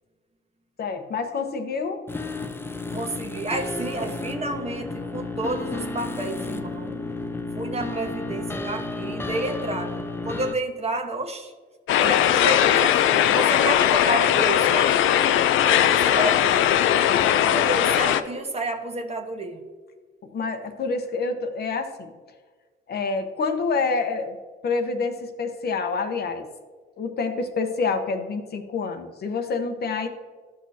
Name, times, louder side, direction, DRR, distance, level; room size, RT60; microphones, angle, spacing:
voice 1, 0.8-2.0 3.9-4.1 12.0-12.7 17.1-17.7 20.2-22.1 22.9-24.4 24.6-26.5 27.0-30.1, left 4 dB, 55° left, 6 dB, 0.9 m, -28 dB
sound 1, 2.1-10.5, left 2 dB, 10° left, 0.6 m, -32 dB
voice 2, 2.9-7.0 7.5-11.5 12.0-15.2 15.7-16.8 17.4-19.6, right 2 dB, 30° right, 4 dB, 1.2 m, -30 dB
sound 2, 11.9-18.2, left 11 dB, 80° left, 0.5 m, -19 dB
12.5 x 6.4 x 2.8 m, 1.5 s
cardioid pair, 90°, 20 cm